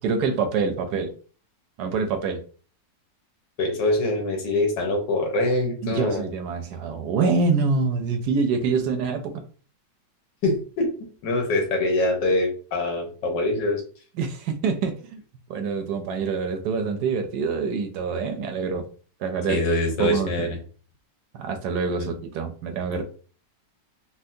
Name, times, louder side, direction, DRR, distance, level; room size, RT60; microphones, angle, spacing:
voice 1, 0.0-1.1 1.8-2.4 5.8-9.4 14.2-15.2 15.5-18.9 19.2-19.6 20.0-20.5 21.3-23.0, right 5 dB, 75° right, 6 dB, 1.1 m, -25 dB
voice 2, 3.6-6.3 10.4-13.8 19.5-20.6 22.0-22.2 22.9-23.0, left 2 dB, 80° left, 2 dB, 1.6 m, -24 dB
4.3 x 2.1 x 2.6 m, 0.39 s
omnidirectional pair, 1.9 m